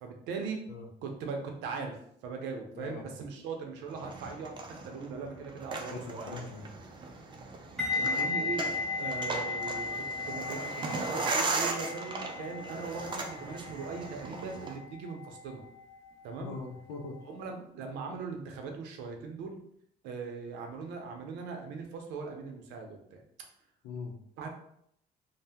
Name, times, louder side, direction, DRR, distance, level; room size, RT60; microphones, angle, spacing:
voice 1, 0.0-0.6 1.0-6.4 8.0-8.7 9.0-15.6 16.2-16.5 17.2-19.6 20.0-23.2 24.4-24.5, right 5 dB, 90° right, 3 dB, 0.6 m, -40 dB
voice 2, 2.7-3.1 5.9-6.7 16.4-17.2 23.8-24.2, left 4 dB, 90° left, 3 dB, 0.6 m, -41 dB
sound 1, 3.9-14.8, right 3 dB, 30° right, 0.4 m, -37 dB
sound 2, 7.8-16.7 17.0-17.3, left 4 dB, 5° left, 0.8 m, -36 dB
2.7 x 2.1 x 3.4 m, 0.71 s
cardioid pair, 110°, 17 cm